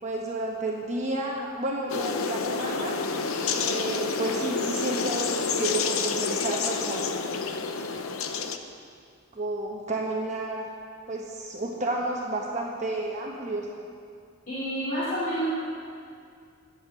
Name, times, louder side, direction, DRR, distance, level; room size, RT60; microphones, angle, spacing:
voice 1, 0.0-3.0 3.5-7.1 9.3-10.7 11.1-13.7, right 2 dB, 35° right, -2 dB, 1.1 m, -31 dB
sound 1, 1.9-8.6, left 5 dB, 90° left, 0.7 m, -29 dB
voice 2, 14.5-15.5, equal, 40° left, -10 dB, 2.7 m, -29 dB
11.0 x 7.4 x 8.4 m, 2.3 s
head